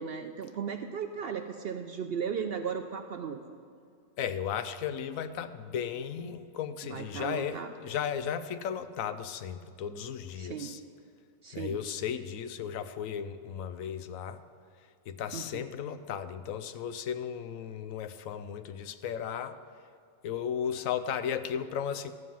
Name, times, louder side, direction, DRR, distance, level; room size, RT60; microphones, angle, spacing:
voice 1, 0.0-3.4 6.9-7.7 10.4-10.8 11.4-11.8 15.3-15.5, right 7 dB, 65° right, 6 dB, 0.6 m, -36 dB
voice 2, 4.2-10.8 11.5-14.4 15.1-19.6 20.2-22.1, left 8 dB, 80° left, 11 dB, 1.0 m, -35 dB
13.5 x 7.3 x 5.7 m, 2.4 s
omnidirectional pair, 1.4 m